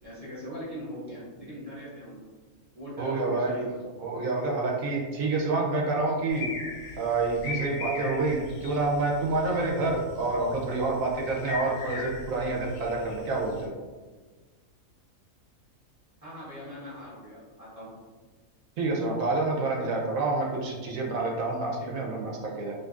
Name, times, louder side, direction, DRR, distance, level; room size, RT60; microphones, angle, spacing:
voice 1, 0.0-2.3 2.7-3.8 16.2-17.9 21.8-22.0, equal, 25° right, -9 dB, 1.2 m, -41 dB
voice 2, 3.0-3.7 4.0-6.4 7.0-13.7 18.8-22.7, right 3 dB, 75° right, -1 dB, 1.0 m, -28 dB
sound 1, 6.3-13.7, left 3 dB, 90° left, 1.1 m, -40 dB
3.8 x 2.5 x 2.4 m, 1.4 s
omnidirectional pair, 1.5 m